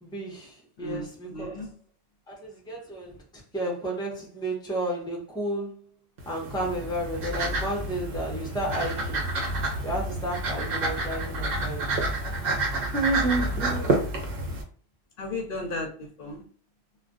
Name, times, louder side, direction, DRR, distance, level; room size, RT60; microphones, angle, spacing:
voice 1, 0.0-1.6 2.3-5.9 6.3-9.3 9.8-11.8 12.1-12.4 12.9-14.0, right 1 dB, 5° left, 0.7 m, -32 dB
voice 2, 0.8-1.7 15.2-16.4, left 2 dB, 65° left, 0.8 m, -35 dB
sound 1, 6.2-14.6, right 2 dB, 60° right, 0.9 m, -29 dB
2.4 x 2.2 x 3.6 m
omnidirectional pair, 1.1 m